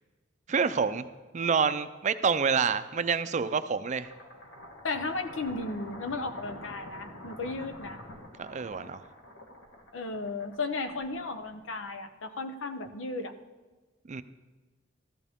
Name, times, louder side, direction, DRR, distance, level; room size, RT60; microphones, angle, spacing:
voice 1, 0.5-1.1 1.3-4.1 8.4-9.0 14.1-14.2, right 6 dB, 40° right, 11 dB, 0.5 m, -27 dB
sound 1, 3.9-12.1, left 1 dB, 65° left, 1.7 m, -47 dB
voice 2, 4.8-8.0 9.9-13.3, left 3 dB, 85° left, 8 dB, 0.9 m, -35 dB
14.0 x 13.5 x 3.6 m, 1.2 s
head